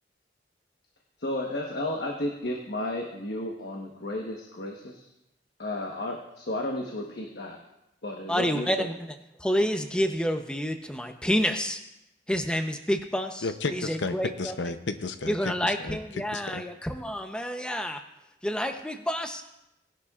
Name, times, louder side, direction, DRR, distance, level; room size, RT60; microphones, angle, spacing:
voice 1, 1.2-5.0 5.6-7.6 8.0-8.9, left 1 dB, 70° left, 0 dB, 1.2 m, -33 dB
voice 2, 8.3-8.9 9.4-11.8 12.3-14.5 15.3-18.0 18.4-19.4, equal, 5° left, 6 dB, 0.7 m, -28 dB
voice 3, 13.4-16.0 16.3-16.6, left 3 dB, 90° left, 9 dB, 0.7 m, -32 dB
19.0 x 11.0 x 2.4 m, 0.88 s
head